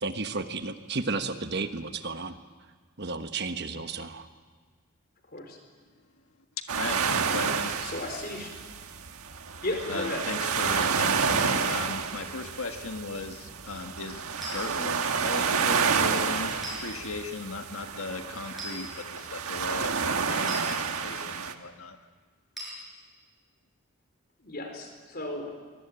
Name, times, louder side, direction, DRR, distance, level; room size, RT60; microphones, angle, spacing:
voice 1, 0.0-2.4 3.0-4.3, right 3 dB, 50° right, 8 dB, 1.3 m, -32 dB
voice 2, 5.3-5.6 7.8-8.5 9.6-10.2 24.4-25.5, left 2 dB, 45° left, 4 dB, 4.6 m, -34 dB
voice 3, 6.6-7.9 9.9-14.2 14.5-22.0, left 4 dB, 75° left, 5 dB, 1.6 m, -37 dB
sound 1, 6.7-21.5, right 6 dB, 90° right, 1.5 m, -29 dB
sound 2, 14.4-14.6 16.6-16.8 18.6-18.8 20.5-20.7 22.6-22.8, equal, ahead, 7.2 m, -37 dB
24.0 x 21.5 x 8.9 m, 1.5 s
head